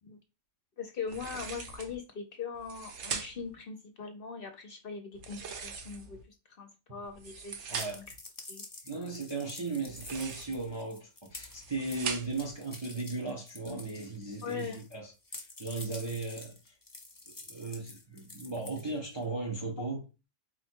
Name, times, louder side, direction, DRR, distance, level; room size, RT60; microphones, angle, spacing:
voice 1, 0.8-8.0 8.5-8.6 14.4-14.8, left 5 dB, 55° left, 0.7 m, -41 dB
sound 1, 1.1-2.0 2.5-3.5 5.1-6.2 7.0-8.1 9.8-10.7 11.3-12.5, right 6 dB, 65° right, 1.0 m, -41 dB
sound 2, 7.7-14.9 15.2-19.2, left 2 dB, 20° left, 0.6 m, -48 dB
voice 2, 7.7-8.0 8.8-16.7 17.3-20.0, right 3 dB, 30° right, 0.5 m, -37 dB
4.2 x 2.2 x 4.4 m
omnidirectional pair, 1.3 m